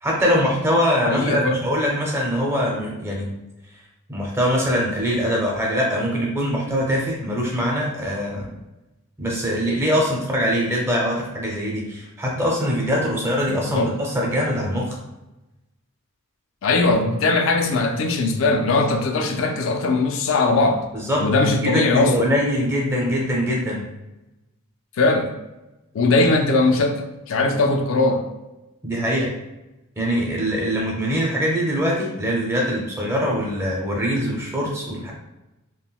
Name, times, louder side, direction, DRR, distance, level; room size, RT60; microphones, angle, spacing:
voice 1, 0.0-3.3 4.1-8.5 9.2-15.0 20.9-21.3 21.6-23.8 28.8-29.3 30.0-35.1, equal, 10° right, -3 dB, 0.6 m, -23 dB
voice 2, 1.0-1.6 13.5-13.9 16.6-20.8 21.2-22.1 25.0-25.3 25.9-28.2, left 3 dB, 65° left, 4 dB, 0.3 m, -20 dB
3.7 x 2.1 x 2.3 m, 0.98 s
head